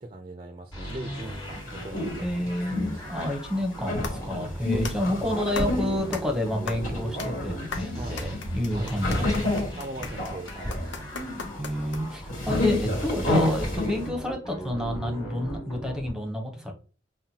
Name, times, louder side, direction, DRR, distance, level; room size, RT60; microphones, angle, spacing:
voice 1, 0.0-3.0 4.7-5.1 8.0-8.3 8.7-8.9 9.8-11.1, right 2 dB, 30° right, 5 dB, 0.4 m, -41 dB
sound 1, 0.7-16.1, equal, 20° left, 1.5 m, -38 dB
sound 2, 1.3-14.1, left 2 dB, 45° left, 1.6 m, -31 dB
voice 2, 2.2-9.5 11.6-16.7, left 1 dB, 5° right, 4 dB, 0.8 m, -29 dB
sound 3, 4.0-12.3, left 4 dB, 75° left, 0.7 m, -40 dB
5.5 x 2.2 x 2.8 m, 0.36 s
head